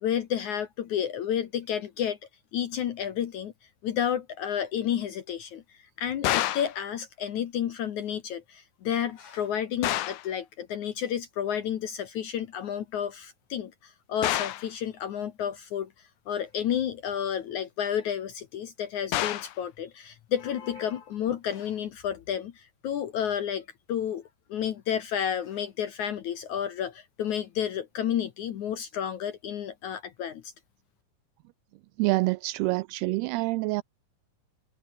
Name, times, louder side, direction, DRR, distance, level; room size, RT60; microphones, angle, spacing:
voice 1, 0.0-2.2 2.5-3.5 3.8-15.9 16.3-30.5, left 9 dB, 65° left, 1.9 m, -31 dB
sound 1, 6.2-6.8 9.8-10.3 14.2-14.7 19.1-19.6, left 14 dB, 90° left, 1.7 m, -28 dB
voice 2, 32.0-33.8, right 21 dB, 90° right, 2.2 m, -26 dB
omnidirectional pair, 5.1 m